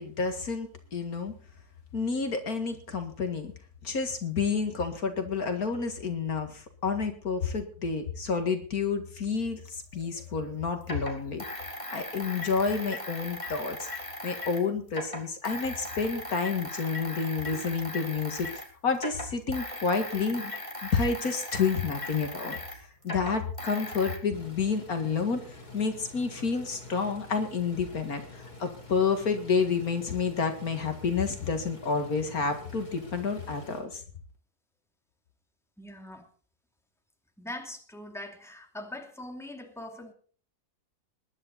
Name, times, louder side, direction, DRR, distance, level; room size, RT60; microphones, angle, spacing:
voice 1, 0.0-1.3 1.9-3.5 3.8-11.4 11.9-13.9 14.2-20.5 20.8-34.0, left 5 dB, 65° left, 7 dB, 2.3 m, -30 dB
sound 1, 9.7-9.8 10.8-14.6 14.9-18.7 18.9-24.2, left 1 dB, 20° left, 2.9 m, -38 dB
sound 2, 24.3-33.8, left 2 dB, 90° left, 4.6 m, -47 dB
voice 2, 35.8-36.3 37.4-40.1, left 1 dB, ahead, 4 dB, 2.5 m, -42 dB
20.5 x 11.0 x 4.1 m, 0.41 s
omnidirectional pair, 1.6 m